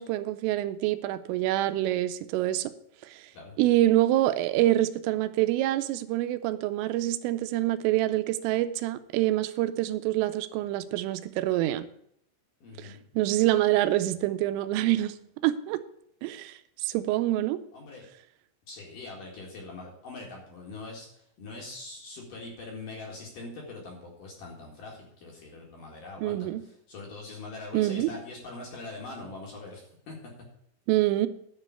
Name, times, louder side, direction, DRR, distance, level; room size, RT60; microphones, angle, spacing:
voice 1, 0.0-2.7 3.1-3.2 3.6-11.9 12.8-15.2 15.4-15.8 16.2-16.5 16.8-17.6 26.2-26.6 27.7-28.1 30.9-31.3, right 15 dB, 85° right, 11 dB, 3.2 m, -26 dB
voice 2, 12.6-13.0 17.7-18.1 18.7-30.2, left 3 dB, 50° left, -1 dB, 2.9 m, -43 dB
10.5 x 5.4 x 8.4 m, 0.71 s
omnidirectional pair, 5.7 m